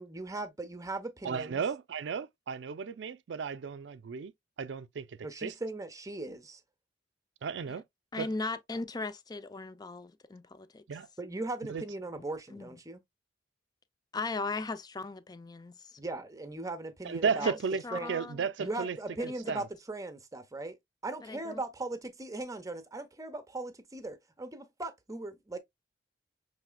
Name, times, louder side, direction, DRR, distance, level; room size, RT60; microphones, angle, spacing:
voice 1, 0.0-1.6 5.2-6.6 11.2-13.0 16.0-17.6 17.9-18.1 18.6-20.8 21.0-25.6, right 2 dB, 20° right, 0.8 m, -39 dB
voice 2, 1.2-4.3 4.6-5.1 5.4-5.5 7.4-7.8 8.2-8.3 10.9-11.1 11.7-11.8 17.0-17.8 18.1-19.0 19.2-19.6, right 6 dB, 90° right, 0.4 m, -34 dB
voice 3, 8.1-10.8 12.5-12.7 14.1-16.0 17.4-17.5 17.8-18.9 19.4-19.6 21.2-21.6, left 3 dB, 20° left, 0.5 m, -38 dB
6.0 x 3.3 x 2.2 m
head